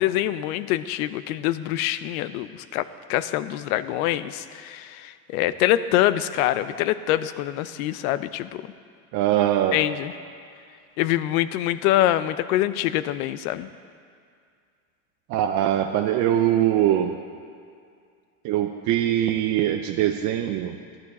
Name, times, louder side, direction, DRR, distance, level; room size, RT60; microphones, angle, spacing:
voice 1, 0.0-8.6 9.7-10.1 11.0-13.7, left 13 dB, 85° left, 14 dB, 0.6 m, -25 dB
voice 2, 9.1-9.8 15.3-17.1 18.4-21.0, right 11 dB, 45° right, 4 dB, 0.6 m, -22 dB
14.0 x 11.5 x 4.1 m, 2.2 s
supercardioid pair, 140°, 42 cm